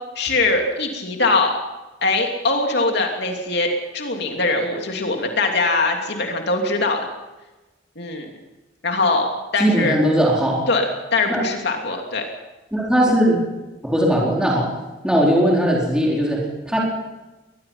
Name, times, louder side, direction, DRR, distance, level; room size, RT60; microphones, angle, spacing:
voice 1, 0.2-1.5 2.0-7.1 8.0-8.3 8.8-10.0 10.7-10.8 11.1-12.2, left 3 dB, 60° left, 2 dB, 2.9 m, -22 dB
voice 2, 9.6-10.6 11.3-11.5 12.7-13.4 13.8-14.7 15.0-16.8, equal, 5° right, -4 dB, 4.4 m, -19 dB
22.5 x 20.0 x 5.8 m, 1.1 s
head